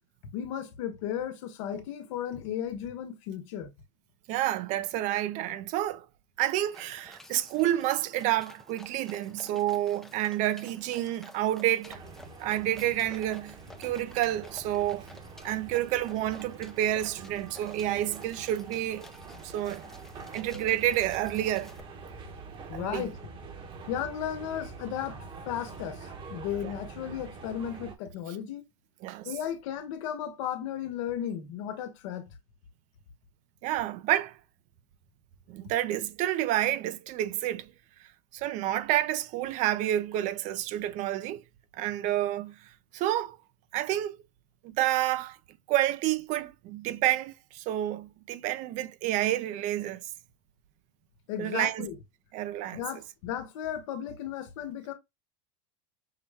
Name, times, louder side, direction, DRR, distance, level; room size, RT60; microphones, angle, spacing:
voice 1, 0.3-3.7 22.7-23.2 23.9-28.6 29.2-32.3 51.3-52.0 52.7-54.9, left 10 dB, 75° left, 1.0 m, -35 dB
voice 2, 4.3-6.1 6.4-12.0 12.4-15.1 15.4-19.1 19.4-19.8 20.3-21.7 22.7-23.0 26.6-26.7 29.0-29.3 33.6-34.4 35.5-37.7 38.3-41.4 41.7-43.4 43.7-44.2 44.6-45.4 45.7-50.1 51.4-51.9 52.3-52.8, right 13 dB, 50° right, 0.5 m, -29 dB
sound 1, 6.6-21.8, left 1 dB, ahead, 0.4 m, -52 dB
sound 2, 11.9-28.0, right 4 dB, 30° right, 1.0 m, -45 dB
5.5 x 2.2 x 3.4 m
supercardioid pair, 140°, 17 cm